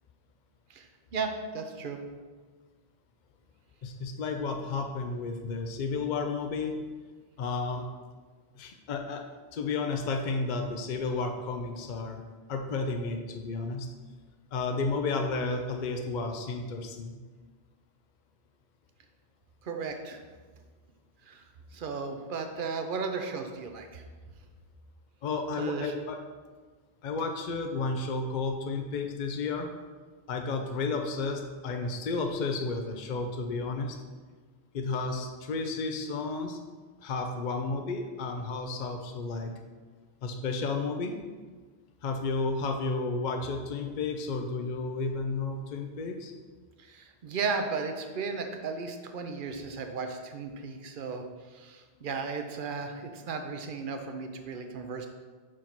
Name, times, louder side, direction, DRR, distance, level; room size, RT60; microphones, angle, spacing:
voice 1, 1.1-2.0 19.6-20.2 21.3-21.4 21.7-24.0 25.6-25.9 46.8-51.2 51.5-55.1, right 4 dB, 55° right, 5 dB, 0.9 m, -35 dB
voice 2, 3.8-6.8 7.4-7.8 8.6-9.2 9.5-12.2 12.5-13.9 14.5-17.2 25.2-26.2 27.0-29.7 30.3-34.0 34.7-36.6 37.0-39.6 40.2-41.2 42.0-46.3, left 3 dB, 55° left, 4 dB, 0.7 m, -32 dB
5.4 x 4.9 x 5.9 m, 1.4 s
omnidirectional pair, 1.1 m